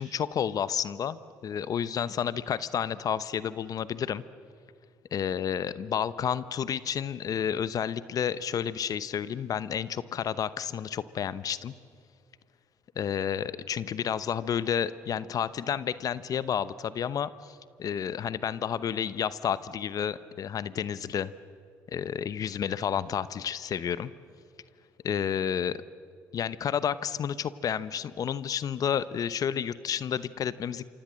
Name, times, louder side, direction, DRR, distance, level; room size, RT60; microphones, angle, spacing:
voice 1, 0.0-4.2 5.1-11.7 13.0-21.3 21.9-24.1 25.0-25.8 26.3-30.8, left 8 dB, 50° left, 16 dB, 0.9 m, -31 dB
28.0 x 25.0 x 7.6 m, 2.3 s
hypercardioid pair, 60°, 8 cm